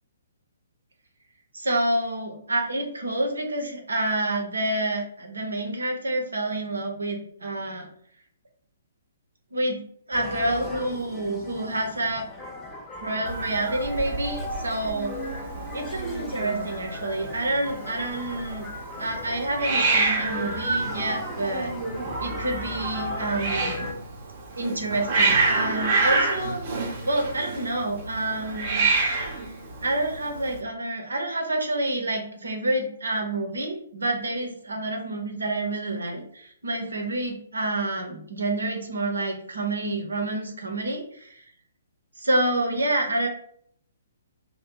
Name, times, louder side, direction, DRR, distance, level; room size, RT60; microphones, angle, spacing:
voice 1, 1.5-7.9 9.5-9.8 10.1-12.2 13.0-15.1 15.7-18.7 19.0-21.7 22.2-23.8 24.5-26.6 27.0-28.8 29.8-41.4 42.2-43.3, right 1 dB, 75° right, 3 dB, 0.7 m, -28 dB
sound 1, 10.1-23.9, left 3 dB, 15° left, 0.5 m, -39 dB
Hiss, 13.2-30.6, right 3 dB, 40° right, 0.7 m, -28 dB
2.7 x 2.2 x 3.7 m, 0.64 s
figure-of-eight pair, 125°, 0 cm